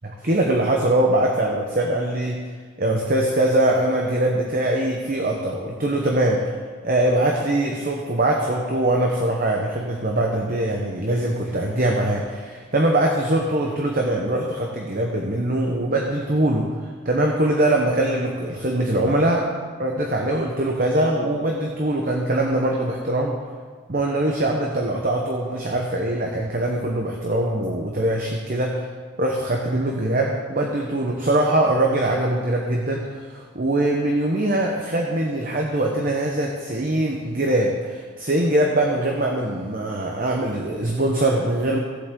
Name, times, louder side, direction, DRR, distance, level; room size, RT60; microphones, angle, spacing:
voice 1, 0.0-2.4 2.8-6.5 6.8-16.7 17.0-19.5 19.8-23.4 23.9-28.9 29.2-41.8, right 1 dB, 45° right, 0 dB, 1.0 m, -22 dB
16.5 x 7.8 x 3.8 m, 1.6 s
head